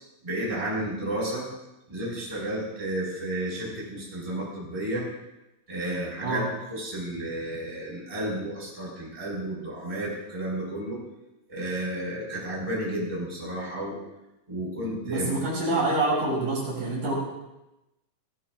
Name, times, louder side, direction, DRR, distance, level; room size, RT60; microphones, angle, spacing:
voice 1, 0.2-1.5 1.9-5.0 5.7-6.4 6.7-11.0 11.5-14.0 14.5-15.3, right 1 dB, 10° right, -5 dB, 4.8 m, -32 dB
voice 2, 15.1-17.2, right 2 dB, 65° right, -4 dB, 4.9 m, -26 dB
17.0 x 16.5 x 2.4 m, 0.95 s
omnidirectional pair, 4.0 m